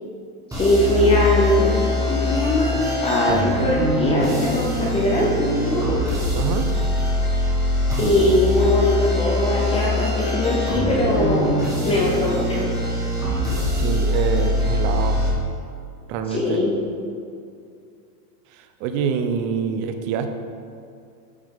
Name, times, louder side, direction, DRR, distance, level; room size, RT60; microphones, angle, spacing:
voice 1, 0.5-1.8 2.1-2.8 3.0-6.0 8.0-11.5 11.8-12.7 16.3-16.7, left 1 dB, 15° left, -3 dB, 0.4 m, -21 dB
sound 1, 0.5-15.3, left 1 dB, 5° right, 1.4 m, -23 dB
voice 2, 6.3-6.7 13.8-15.2 16.1-16.6 18.8-20.3, right 6 dB, 40° right, 8 dB, 0.6 m, -25 dB
8.9 x 6.4 x 3.6 m, 2.4 s
supercardioid pair, 150°, 47 cm